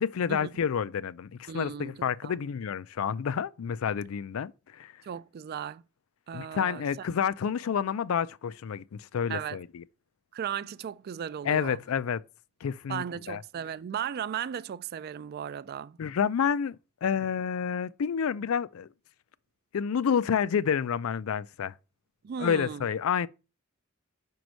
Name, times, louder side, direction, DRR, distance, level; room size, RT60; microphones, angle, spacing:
voice 1, 0.0-4.9 6.3-9.8 11.4-12.2 12.6-13.4 16.0-16.8 17.0-18.9 19.7-21.7 22.4-23.3, left 7 dB, 75° left, 0.4 m, -29 dB
voice 2, 1.5-2.4 5.0-5.8 6.3-6.8 9.3-9.6 10.3-11.8 12.9-16.0 22.2-22.9, right 8 dB, 50° right, 0.3 m, -36 dB
5.2 x 4.6 x 6.3 m
head